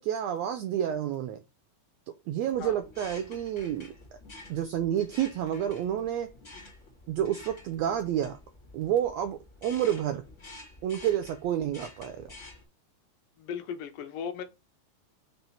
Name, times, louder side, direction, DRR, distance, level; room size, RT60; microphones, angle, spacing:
voice 1, 0.0-1.4 2.3-3.9 4.5-6.3 7.1-8.4 8.7-10.2 10.8-12.3, right 10 dB, 85° right, 1.5 m, -29 dB
sound 1, 2.5-12.6, left 2 dB, 30° left, 1.8 m, -50 dB
voice 2, 13.4-14.4, left 7 dB, 85° left, 2.5 m, -37 dB
5.8 x 3.0 x 5.6 m
omnidirectional pair, 3.7 m